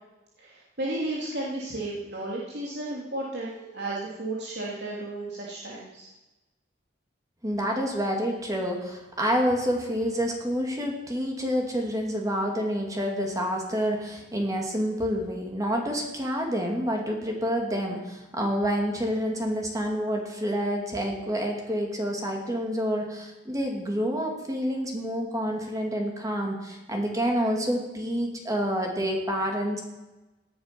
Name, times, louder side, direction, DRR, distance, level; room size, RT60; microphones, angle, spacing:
voice 1, 0.4-6.1, right 2 dB, 65° right, -4 dB, 2.8 m, -33 dB
voice 2, 7.4-29.8, equal, 20° right, 1 dB, 2.5 m, -28 dB
18.0 x 11.0 x 6.1 m, 1.0 s
head